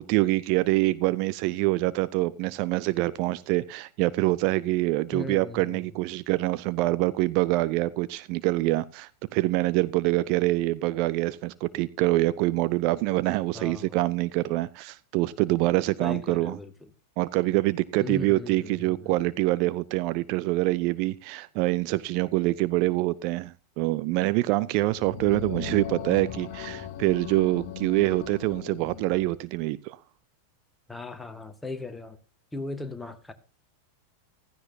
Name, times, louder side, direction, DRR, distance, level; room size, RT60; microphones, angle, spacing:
voice 1, 0.0-16.6 17.2-30.0, right 19 dB, 45° right, 0.6 m, -25 dB
voice 2, 5.1-5.9 13.5-14.0 16.0-16.9 18.0-19.3 30.9-32.2 32.5-33.3, left 2 dB, 5° left, 1.7 m, -38 dB
sound 1, 24.7-29.4, left 9 dB, 45° left, 1.6 m, -38 dB
15.5 x 14.5 x 2.8 m
figure-of-eight pair, 90°, 0 cm